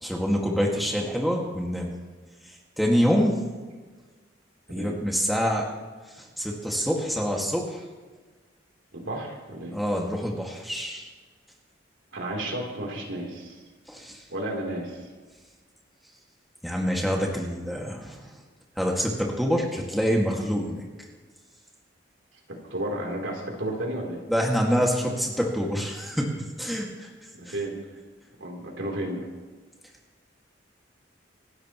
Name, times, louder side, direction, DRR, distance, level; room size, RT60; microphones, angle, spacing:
voice 1, 0.0-1.9 2.8-3.4 4.7-5.7 6.2-7.8 9.7-11.1 13.9-14.2 16.6-18.3 18.8-20.8 24.3-27.1 27.5-27.6, equal, ahead, -2 dB, 2.0 m, -26 dB
voice 2, 8.9-9.8 12.1-13.6 14.3-15.1 22.7-24.2 27.3-27.8 28.4-29.3, right 1 dB, 85° right, 0 dB, 3.6 m, -32 dB
26.5 x 12.5 x 3.1 m, 1.4 s
head